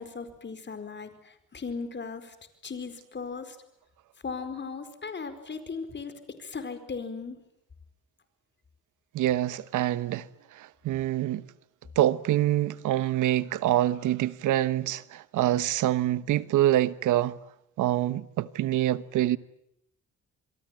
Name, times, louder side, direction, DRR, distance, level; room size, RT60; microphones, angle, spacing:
voice 1, 0.0-2.3 2.6-3.6 4.2-6.1 6.4-7.4, left 5 dB, 35° left, 4.8 m, -37 dB
voice 2, 9.1-10.3 10.5-11.4 12.0-17.4 17.8-19.4, right 13 dB, 80° right, 1.2 m, -25 dB
27.5 x 23.0 x 9.2 m
cardioid pair, 90°, 30 cm